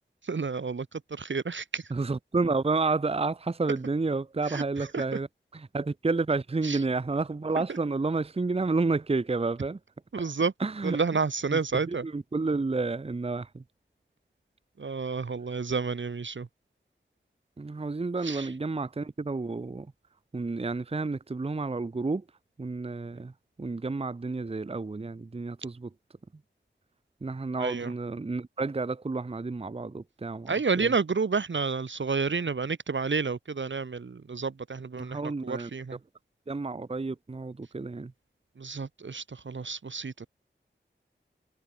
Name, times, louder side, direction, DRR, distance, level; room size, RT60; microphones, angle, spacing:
voice 1, 0.2-1.8 4.5-4.6 4.9-5.0 6.6-6.8 10.1-10.5 10.8-12.0 14.8-16.5 18.2-18.5 27.6-27.9 30.5-36.0 38.6-40.3, right 4 dB, 70° right, 1.6 m, -30 dB
voice 2, 1.9-5.3 5.5-9.8 10.2-10.3 10.6-11.0 11.5-11.6 11.9-13.6 17.6-19.9 20.3-22.2 22.6-23.3 23.6-25.9 27.2-30.9 35.0-35.7 36.5-38.1, right 3 dB, 30° right, 0.7 m, -30 dB
wide cardioid pair, 75°, 20 cm